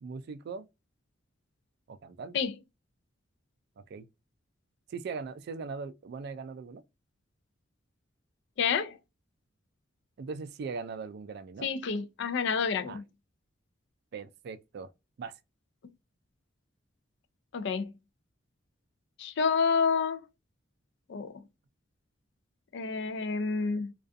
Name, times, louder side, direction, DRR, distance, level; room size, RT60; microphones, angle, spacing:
voice 1, 0.0-0.6 1.9-2.4 3.8-4.1 4.9-6.8 10.2-11.7 12.9-13.0 14.1-14.9 15.2-15.3, right 5 dB, 55° right, 0.3 m, -40 dB
voice 2, 8.6-9.0 11.6-13.0 17.5-17.9 19.2-20.2 21.1-21.3 22.7-23.9, left 5 dB, 60° left, 0.4 m, -29 dB
2.4 x 2.3 x 2.5 m
head